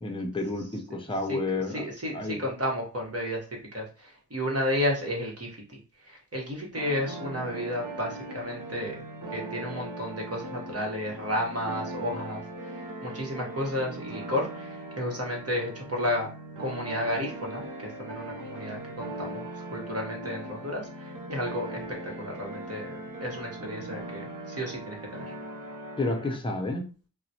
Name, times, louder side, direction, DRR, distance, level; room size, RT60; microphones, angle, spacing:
voice 1, 0.0-1.8 2.1-2.5 26.0-26.9, left 2 dB, 15° left, 3 dB, 0.6 m, -30 dB
voice 2, 1.3-5.6 6.0-9.0 9.3-16.3 16.6-19.4 19.7-25.3, left 1 dB, 40° right, -1 dB, 1.2 m, -32 dB
sound 1, 6.8-26.4, right 1 dB, 55° right, 0.7 m, -39 dB
3.9 x 2.1 x 2.8 m, 0.36 s
cardioid pair, 60°, 37 cm